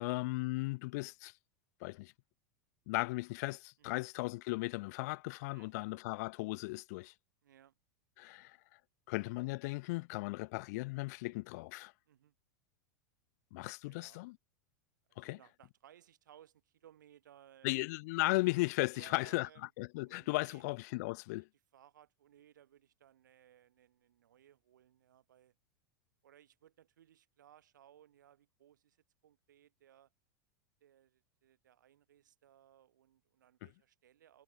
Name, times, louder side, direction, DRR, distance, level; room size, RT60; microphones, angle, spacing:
voice 1, 0.0-1.3 1.8-2.1 2.9-7.1 8.2-8.6 9.1-11.9 13.5-14.4 15.2-15.4 17.6-19.5 19.8-21.5, left 23 dB, 60° left, 0.5 m, -36 dB
voice 2, 5.5-5.9 7.4-7.7 12.1-12.3 13.8-14.2 15.1-17.9 18.9-19.7 20.0-20.6 21.7-25.5 26.2-30.1 30.8-34.4, right 11 dB, 90° right, 2.7 m, -63 dB
hypercardioid pair, 120°, 10 cm